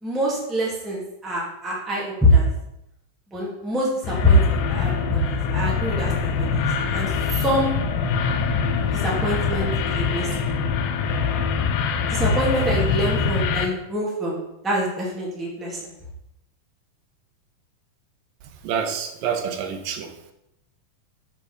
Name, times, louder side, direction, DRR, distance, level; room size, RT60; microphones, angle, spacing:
voice 1, 0.0-2.5 3.3-7.7 8.8-10.5 12.1-14.4 14.6-15.9, equal, ahead, -4 dB, 1.9 m, -24 dB
sound 1, 4.0-13.7, left 5 dB, 85° left, 2.6 m, -24 dB
voice 2, 18.6-20.3, right 7 dB, 80° right, 5 dB, 2.7 m, -28 dB
7.5 x 5.8 x 6.5 m, 0.84 s
omnidirectional pair, 4.0 m